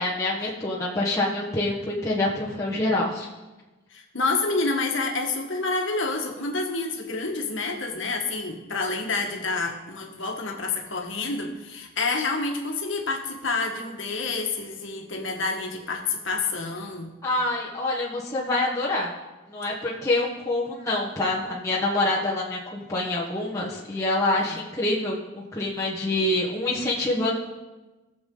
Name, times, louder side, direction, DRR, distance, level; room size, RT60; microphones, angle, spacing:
voice 1, 0.0-3.3 17.2-19.1 19.5-27.3, left 2 dB, 15° left, -6 dB, 1.3 m, -26 dB
voice 2, 3.9-17.1 24.4-24.6, left 3 dB, 60° left, 2 dB, 1.6 m, -28 dB
19.0 x 7.1 x 3.9 m, 1.1 s
head